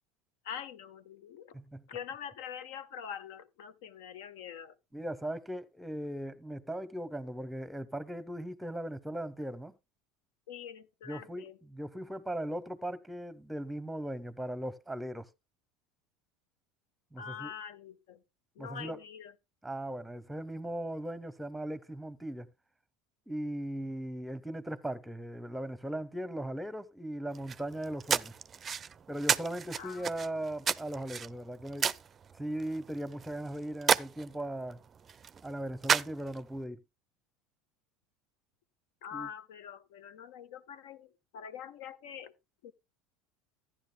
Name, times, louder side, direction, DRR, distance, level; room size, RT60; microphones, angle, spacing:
voice 1, 0.4-1.6 1.9-4.8 10.5-11.6 17.2-18.2 18.5-19.3 29.7-30.1 39.0-42.3 42.6-42.7, left 8 dB, 70° left, 0.9 m, -44 dB
voice 2, 1.5-1.8 4.9-9.7 11.1-15.3 17.1-17.5 18.6-19.0 19.6-22.5 23.3-28.3 29.1-31.9 32.3-34.8 35.4-36.8 39.1-39.3, right 1 dB, 5° right, 0.9 m, -38 dB
sound 1, 27.3-36.6, right 7 dB, 30° right, 0.4 m, -34 dB
14.5 x 10.5 x 2.2 m
hypercardioid pair, 80°, 0 cm